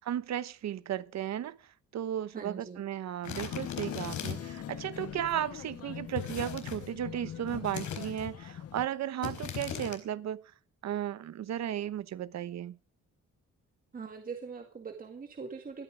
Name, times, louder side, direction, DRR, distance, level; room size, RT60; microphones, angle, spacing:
voice 1, 0.0-1.5 1.9-10.4 10.8-12.8, right 11 dB, 65° right, 1.1 m, -35 dB
voice 2, 2.3-2.8 13.9-15.8, right 5 dB, 30° right, 2.0 m, -42 dB
sound 1, 3.2-4.6 6.2-6.9 7.5-8.3 9.2-10.0, left 8 dB, 80° left, 4.6 m, -39 dB
sound 2, 3.5-8.9, left 10 dB, 55° left, 0.8 m, -42 dB
19.5 x 13.5 x 5.0 m
wide cardioid pair, 175°, 29 cm